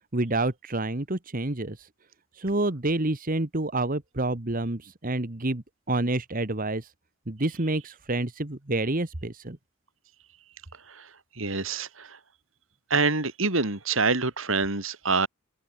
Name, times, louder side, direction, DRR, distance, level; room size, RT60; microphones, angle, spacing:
voice 1, 0.1-1.8 2.4-6.9 7.3-9.6, right 2 dB, 40° right, 1.6 m, -28 dB
voice 2, 11.3-12.2 12.9-15.3, right 4 dB, 70° right, 3.4 m, -26 dB
head